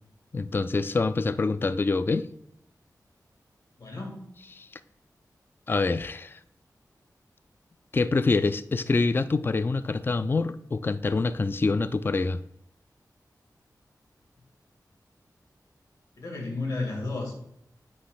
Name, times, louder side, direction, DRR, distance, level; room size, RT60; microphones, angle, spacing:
voice 1, 0.3-2.3 4.6-4.7 5.7-6.4 7.9-12.4, left 3 dB, 30° left, 14 dB, 0.3 m, -26 dB
voice 2, 3.8-4.3 16.2-17.4, left 3 dB, 70° left, 1 dB, 2.4 m, -32 dB
8.5 x 5.2 x 3.9 m, 0.76 s
wide cardioid pair, 90°, 7 cm